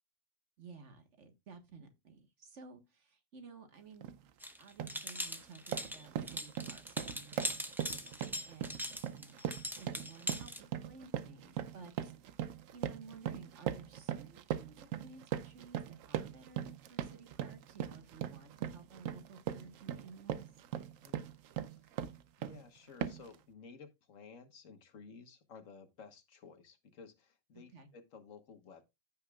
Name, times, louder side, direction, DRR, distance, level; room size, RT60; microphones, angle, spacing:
voice 1, 0.6-4.1 4.6-9.4 9.7-10.5 10.8-20.5 27.5-27.9, right 4 dB, 65° right, 1.8 m, -55 dB
sound 1, 4.0-4.2 4.6-5.0 5.4-22.6 23.0-23.4, right 10 dB, 85° right, 1.0 m, -40 dB
sound 2, 4.4-10.6, equal, 5° right, 0.4 m, -41 dB
voice 2, 20.9-21.3 21.8-22.0 22.4-28.8, left 5 dB, 80° left, 1.6 m, -55 dB
14.5 x 5.6 x 2.3 m
omnidirectional pair, 1.3 m